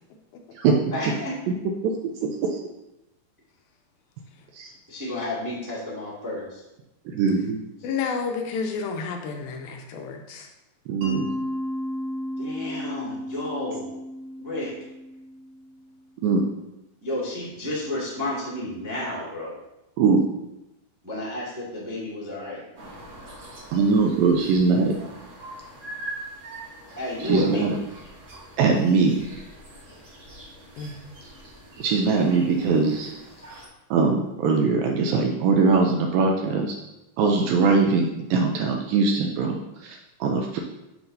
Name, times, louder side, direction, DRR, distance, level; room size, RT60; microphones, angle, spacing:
voice 1, 0.9-1.3 4.9-6.6 12.4-13.9 14.4-14.7 17.0-19.5 21.0-22.6 27.0-27.7 29.9-30.0, left 1 dB, 20° right, -7 dB, 0.5 m, -31 dB
voice 2, 2.2-2.6 4.5-4.7 7.1-7.6 10.9-11.3 16.2-16.4 20.0-20.2 23.7-24.9 27.2-27.8 28.6-29.2 31.8-33.1 33.9-36.8 37.2-40.6, right 4 dB, 80° right, 2 dB, 2.1 m, -21 dB
voice 3, 7.8-10.5 30.8-31.0, left 5 dB, 80° left, 3 dB, 2.4 m, -30 dB
Mallet percussion, 11.0-15.8, left 1 dB, 55° right, 3.1 m, -33 dB
sound 1, 22.7-33.7, right 1 dB, 35° right, 1.7 m, -43 dB
7.8 x 7.0 x 2.7 m, 0.93 s
omnidirectional pair, 4.5 m